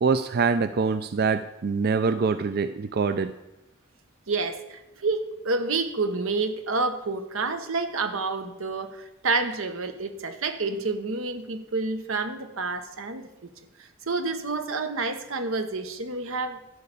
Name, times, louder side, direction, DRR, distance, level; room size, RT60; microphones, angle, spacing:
voice 1, 0.0-3.3, right 5 dB, 50° right, 0.4 m, -24 dB
voice 2, 4.3-13.3 14.1-16.6, right 3 dB, 85° right, 1.1 m, -29 dB
12.5 x 5.6 x 8.3 m
head